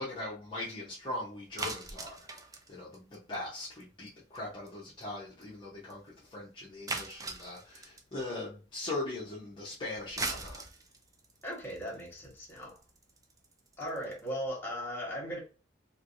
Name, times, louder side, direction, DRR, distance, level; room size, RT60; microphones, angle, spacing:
voice 1, 0.0-10.6, left 2 dB, 30° left, 0.9 m, -40 dB
sound 1, 1.6-3.8 4.1-4.4 4.7-4.8 5.0-5.1 5.4-5.5 5.9-6.0 6.9-8.1 9.9-14.3, right 3 dB, 20° right, 0.5 m, -39 dB
voice 2, 11.4-12.8 13.8-15.4, equal, 10° left, 1.3 m, -38 dB
3.3 x 3.0 x 2.6 m
head